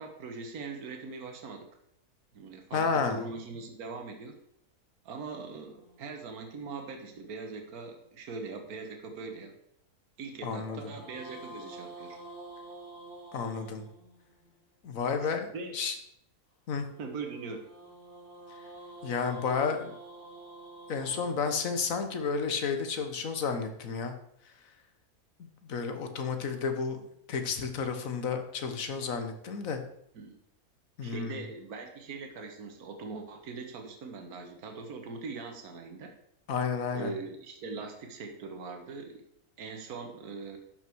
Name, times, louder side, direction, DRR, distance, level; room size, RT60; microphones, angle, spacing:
voice 1, 0.0-1.7 2.3-4.4 5.0-9.5 10.2-12.2 15.2-15.8 17.0-17.6 30.1-30.4 31.0-36.1 36.9-39.2 39.6-40.6, right 4 dB, 75° right, 4 dB, 1.6 m, -41 dB
voice 2, 2.7-3.2 10.4-10.9 13.3-13.9 14.8-15.5 15.7-15.9 16.7-16.9 19.0-19.9 20.9-24.1 25.4-29.8 31.0-31.4 36.5-37.1, left 5 dB, 65° left, 7 dB, 1.5 m, -31 dB
sound 1, 5.8-8.2 10.4-14.6 16.7-22.9, right 2 dB, 35° left, 2.4 m, -50 dB
11.5 x 6.1 x 4.6 m, 0.73 s
omnidirectional pair, 1.6 m